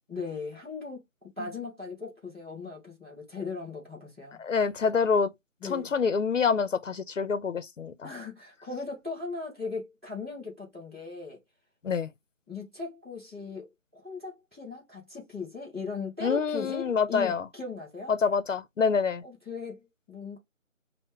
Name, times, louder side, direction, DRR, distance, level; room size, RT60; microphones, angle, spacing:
voice 1, 0.1-4.4 5.6-5.9 8.0-11.4 12.5-13.7 13.9-18.1 19.2-20.4, left 4 dB, 10° right, 1.5 m, -38 dB
voice 2, 4.4-5.3 5.6-8.1 11.8-12.1 16.2-17.5 18.1-19.2, left 5 dB, 70° left, 0.6 m, -26 dB
5.5 x 2.1 x 3.6 m
figure-of-eight pair, 165°, 40 cm